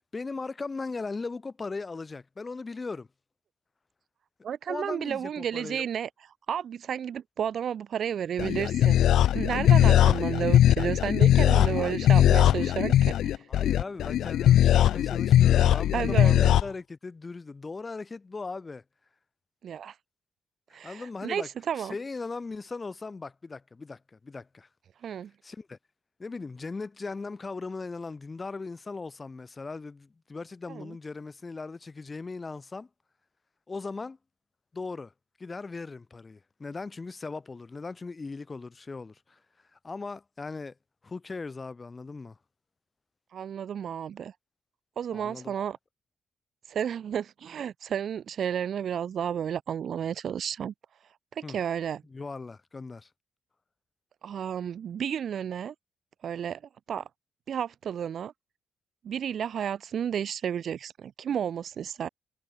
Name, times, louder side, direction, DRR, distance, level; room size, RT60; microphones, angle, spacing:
voice 1, 0.0-3.1 4.7-5.8 11.7-12.1 13.5-18.8 20.8-21.5 21.8-24.7 25.4-25.8 26.2-32.9 33.7-34.2 34.7-35.1 35.4-39.4 39.7-40.7 41.0-42.4 45.1-45.7 51.4-51.6 52.1-53.1, left 3 dB, 25° left, 7.8 m, -38 dB
voice 2, 4.4-6.1 6.5-9.0 9.3-13.4 15.6-16.5 19.6-19.9 20.7-22.0 25.0-25.3 30.7-31.0 43.3-44.3 45.0-45.8 46.7-50.7 51.4-52.0 54.2-55.7 56.2-56.6 56.9-57.1 57.5-58.3 59.0-62.1, right 8 dB, 60° right, 1.9 m, -32 dB
sound 1, 8.4-16.6, left 11 dB, 75° left, 0.3 m, -20 dB
cardioid pair, 90°, 0 cm